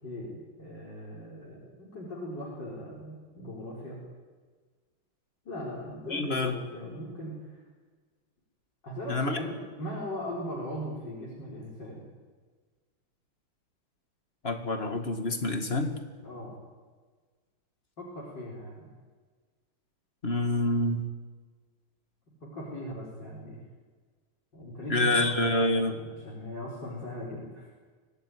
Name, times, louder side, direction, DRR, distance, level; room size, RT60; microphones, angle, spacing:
voice 1, 0.0-4.0 5.5-7.6 8.8-12.0 16.2-16.6 18.0-18.9 22.4-23.6 24.5-27.7, equal, 55° left, -4 dB, 5.3 m, -39 dB
voice 2, 6.1-6.6 9.1-9.4 14.4-15.9 20.2-21.1 24.9-26.0, left 2 dB, 30° left, 5 dB, 2.2 m, -27 dB
25.5 x 18.0 x 9.4 m, 1.5 s
omnidirectional pair, 2.3 m